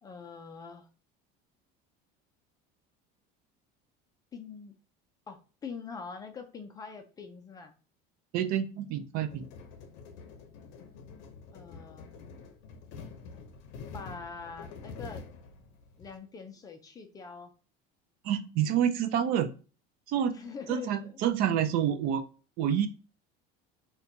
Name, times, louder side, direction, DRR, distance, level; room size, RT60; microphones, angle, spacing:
voice 1, 0.0-0.9 4.3-4.7 5.3-7.8 11.5-12.1 13.9-15.2 16.0-17.5 20.3-21.3, left 5 dB, 20° left, 5 dB, 0.3 m, -44 dB
voice 2, 8.3-9.5 18.2-19.5 20.1-20.4 20.7-22.2 22.6-22.9, right 9 dB, 50° right, 9 dB, 0.4 m, -28 dB
sound 1, 9.3-16.2, left 5 dB, 70° left, 0.6 m, -47 dB
4.2 x 2.2 x 2.5 m, 0.36 s
cardioid pair, 160°, 20 cm